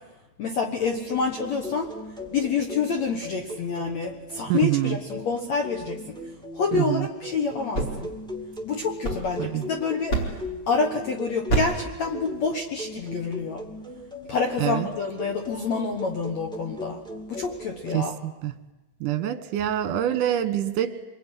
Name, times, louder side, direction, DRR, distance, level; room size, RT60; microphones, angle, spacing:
voice 1, 0.4-1.9 2.3-6.2 6.5-8.1 8.7-10.1 10.7-13.6 14.3-17.0 17.3-18.2, left 4 dB, 70° left, 4 dB, 1.7 m, -27 dB
sound 1, 0.8-18.0, left 1 dB, 5° left, 0.4 m, -39 dB
voice 2, 4.5-5.0 6.7-7.1 9.4-9.6 14.6-14.9 17.9-18.5 19.0-20.9, right 12 dB, 65° right, 9 dB, 2.3 m, -25 dB
sound 2, 7.5-9.7 10.1-10.6 11.5-11.9, right 3 dB, 25° left, 4.6 m, -29 dB
26.0 x 22.0 x 10.0 m, 1.0 s
omnidirectional pair, 5.2 m